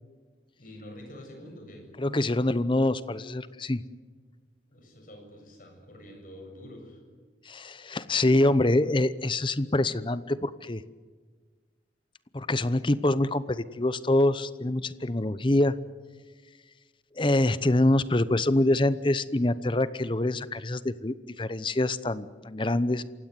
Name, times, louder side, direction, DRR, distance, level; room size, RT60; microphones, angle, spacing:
voice 1, 0.6-1.9 4.7-7.0, left 1 dB, 50° left, 3 dB, 7.6 m, -46 dB
voice 2, 2.0-3.8 7.5-10.8 12.3-15.8 17.2-23.0, left 1 dB, 25° left, 15 dB, 0.8 m, -25 dB
27.5 x 16.5 x 9.8 m, 1.5 s
head